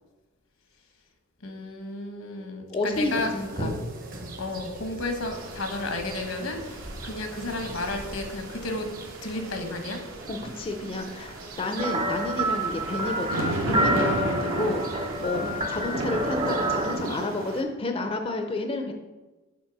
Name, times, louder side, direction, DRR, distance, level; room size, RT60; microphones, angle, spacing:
voice 1, 1.4-3.3 3.6-3.7 4.4-8.9 9.2-10.0, left 2 dB, 80° left, 5 dB, 1.1 m, -32 dB
voice 2, 2.7-3.7 10.3-18.9, left 2 dB, 30° left, 4 dB, 0.4 m, -30 dB
sound 1, 2.9-17.3, right 2 dB, 45° right, 0.9 m, -42 dB
sound 2, 5.3-17.6, right 2 dB, 75° right, 0.9 m, -35 dB
sound 3, 11.8-16.9, right 1 dB, 25° right, 0.5 m, -28 dB
6.5 x 4.3 x 4.7 m, 1.2 s
head